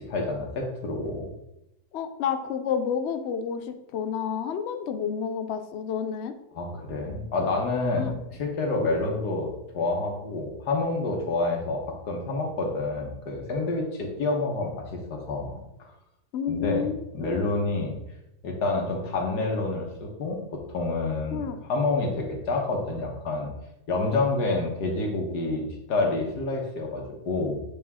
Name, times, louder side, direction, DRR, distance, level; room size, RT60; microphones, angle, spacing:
voice 1, 0.1-1.3 6.5-15.9 16.5-16.9 17.1-17.9 18.4-23.5 23.9-25.6 25.9-27.6, left 3 dB, 85° left, 0 dB, 1.8 m, -28 dB
voice 2, 1.9-6.3 7.9-8.1 16.3-17.3 21.3-21.6, left 7 dB, 65° left, 8 dB, 0.6 m, -30 dB
8.4 x 3.5 x 3.6 m, 0.87 s
omnidirectional pair, 1.7 m